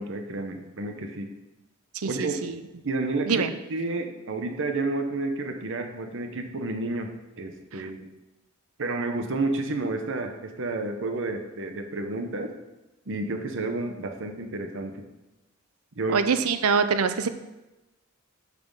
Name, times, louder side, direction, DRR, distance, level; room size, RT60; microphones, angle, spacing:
voice 1, 0.0-1.3 2.0-2.4 2.8-8.1 8.8-12.5 13.1-15.0 15.9-16.2, right 2 dB, 65° right, 6 dB, 0.9 m, -30 dB
voice 2, 1.9-2.6 3.3-3.5 16.1-17.3, right 5 dB, 85° right, 11 dB, 0.6 m, -24 dB
7.1 x 6.0 x 5.4 m, 1.0 s
head